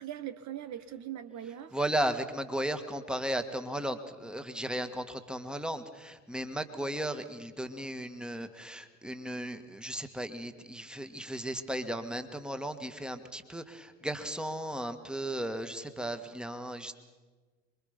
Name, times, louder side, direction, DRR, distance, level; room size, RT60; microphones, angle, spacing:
voice 1, 0.0-1.8, right 11 dB, 45° right, 11 dB, 1.3 m, -40 dB
voice 2, 1.7-16.9, right 1 dB, ahead, 9 dB, 1.8 m, -35 dB
27.0 x 23.0 x 5.3 m, 1.3 s
hypercardioid pair, 70°, 38 cm